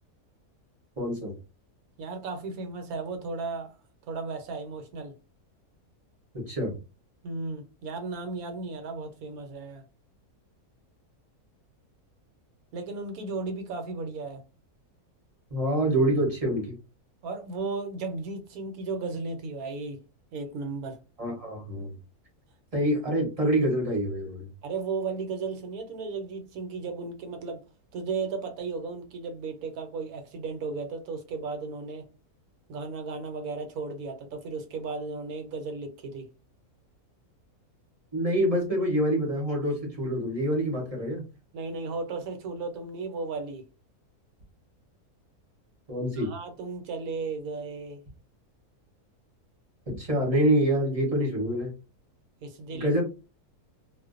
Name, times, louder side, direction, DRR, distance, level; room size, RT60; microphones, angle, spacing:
voice 1, 1.0-1.3 6.3-6.7 15.5-16.7 21.2-21.9 22.7-24.4 38.1-41.2 45.9-46.3 49.9-51.7 52.7-53.0, right 1 dB, 30° right, 0.7 m, -26 dB
voice 2, 2.0-3.7 4.1-5.1 7.2-9.8 12.7-14.4 17.2-20.0 20.3-21.0 24.6-27.6 27.9-32.1 32.7-36.3 41.5-43.7 46.2-48.0 52.4-52.9, right 4 dB, 75° right, 1.0 m, -35 dB
2.5 x 2.1 x 2.4 m
omnidirectional pair, 1.6 m